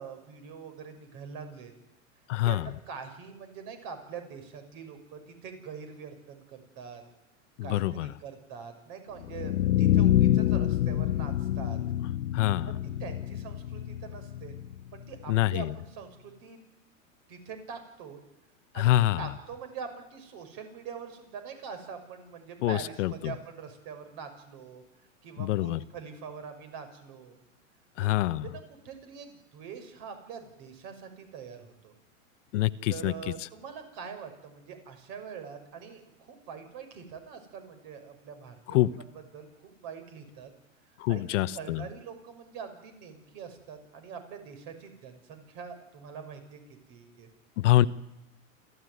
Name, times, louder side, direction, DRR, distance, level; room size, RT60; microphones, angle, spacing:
voice 1, 0.0-1.7 2.4-2.6 2.9-7.0 7.6-9.5 9.8-11.8 12.7-14.6 14.9-16.6 17.3-18.2 18.7-24.8 25.2-27.4 28.0-31.9 32.9-40.5 41.1-41.2 41.5-46.6 46.9-47.3, right 6 dB, 50° right, 7 dB, 6.1 m, -44 dB
voice 2, 2.3-2.7 7.7-8.1 12.3-12.8 15.3-15.7 18.8-19.3 22.6-23.3 25.4-25.8 28.0-28.4 32.5-33.1 38.7-38.9 41.0-41.8 47.6-47.9, left 15 dB, 60° left, 15 dB, 1.0 m, -25 dB
sound 1, 9.2-15.2, left 12 dB, 90° left, 0.8 m, -27 dB
28.0 x 14.5 x 9.5 m, 0.91 s
hypercardioid pair, 120°, 41 cm